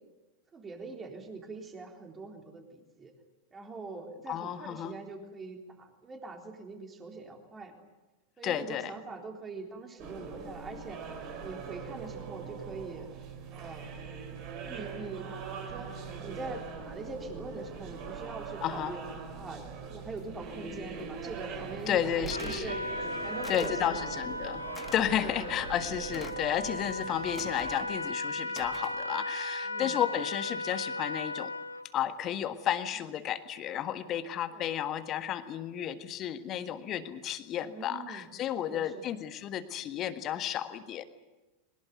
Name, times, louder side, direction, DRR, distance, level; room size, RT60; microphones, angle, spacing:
voice 1, 0.5-3.1 3.5-7.8 8.4-11.0 11.4-13.1 13.5-14.0 14.6-15.3 15.6-19.0 19.4-19.6 19.9-22.8 23.2-24.1 25.1-25.6 29.6-30.0 34.5-34.7 37.6-38.3 38.6-39.1, right 3 dB, 20° right, 3 dB, 3.7 m, -43 dB
voice 2, 4.3-4.9 8.4-8.9 18.6-19.0 21.9-22.7 23.5-31.5 31.9-41.0, left 10 dB, 30° left, 11 dB, 1.6 m, -32 dB
sound 1, 10.0-27.8, right 5 dB, 40° right, 4.3 m, -42 dB
Trumpet, 22.3-31.9, left 1 dB, 85° left, 1.1 m, -36 dB
sound 2, 22.3-22.7 23.4-23.8 24.7-25.0 26.1-26.5 27.3-27.9 28.5-29.0, left 4 dB, 15° left, 1.4 m, -47 dB
22.5 x 20.5 x 9.4 m, 1.1 s
figure-of-eight pair, 90°, 0 cm